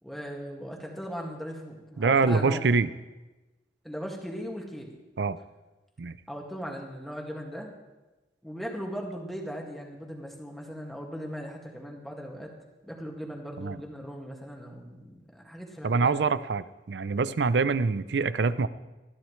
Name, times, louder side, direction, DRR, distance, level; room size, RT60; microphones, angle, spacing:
voice 1, 0.0-2.8 3.8-5.0 6.3-7.7 8.4-12.5 12.8-16.3, equal, ahead, -1 dB, 2.0 m, -38 dB
voice 2, 2.0-2.9 5.2-5.4 6.0-6.2 13.6-13.8 15.8-18.7, right 4 dB, 70° right, 15 dB, 0.5 m, -25 dB
20.5 x 13.5 x 3.2 m, 1.1 s
head